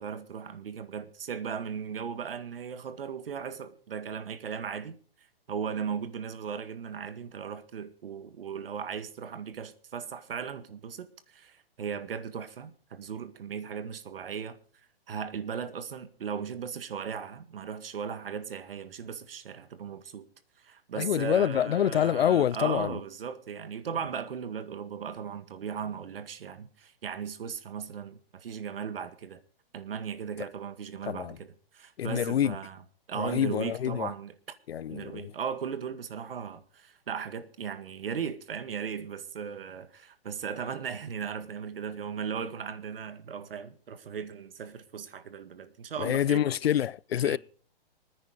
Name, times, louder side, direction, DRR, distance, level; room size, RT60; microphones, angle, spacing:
voice 1, 0.0-5.0 5.5-14.6 15.1-20.3 20.6-29.4 29.7-32.8 33.1-34.3 34.9-46.5 47.2-47.4, right 7 dB, 70° right, 1.9 m, -37 dB
voice 2, 21.0-23.0 31.1-31.4 32.0-32.5 33.2-34.1 34.7-35.3 46.0-47.4, left 10 dB, 85° left, 0.5 m, -26 dB
25.5 x 9.8 x 3.9 m
hypercardioid pair, 150°, 30 cm